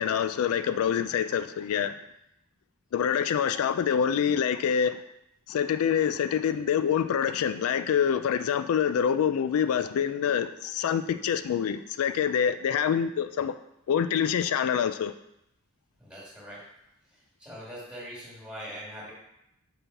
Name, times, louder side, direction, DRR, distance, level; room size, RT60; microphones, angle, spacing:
voice 1, 0.0-2.0 2.9-5.0 5.5-13.5 13.9-15.1, left 8 dB, 80° left, 0.3 m, -26 dB
voice 2, 16.0-16.6 17.1-19.1, equal, 5° right, 2.2 m, -43 dB
5.7 x 5.5 x 4.1 m
head